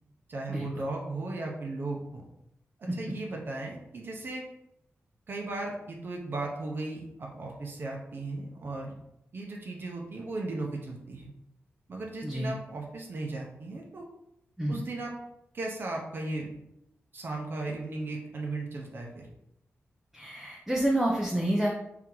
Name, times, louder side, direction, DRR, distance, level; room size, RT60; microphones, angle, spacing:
voice 1, 0.3-2.2 2.8-4.4 5.3-9.0 9.3-11.3 11.9-14.1 14.7-15.1 15.5-16.5 17.1-19.3, right 2 dB, 50° right, -1 dB, 0.6 m, -36 dB
voice 2, 12.2-12.5 14.6-14.8 20.1-21.7, right 1 dB, 5° right, -2 dB, 0.4 m, -28 dB
3.8 x 3.4 x 3.0 m, 0.81 s
wide cardioid pair, 170°, 5 cm